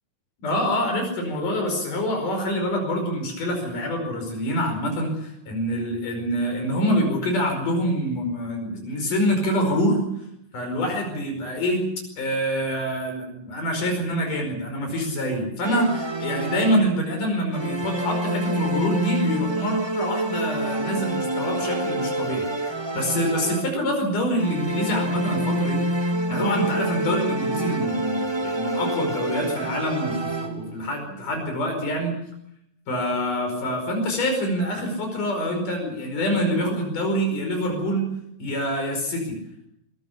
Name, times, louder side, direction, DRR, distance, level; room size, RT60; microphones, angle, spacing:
voice 1, 0.4-10.0 10.5-11.8 12.2-25.8 26.3-32.1 32.9-38.1 38.4-39.4, equal, 85° left, 3 dB, 6.7 m, -26 dB
sound 1, 15.6-17.1 17.5-24.0 24.4-30.8, right 1 dB, 30° right, 0.5 m, -27 dB
23.0 x 21.5 x 7.1 m, 0.75 s
omnidirectional pair, 3.6 m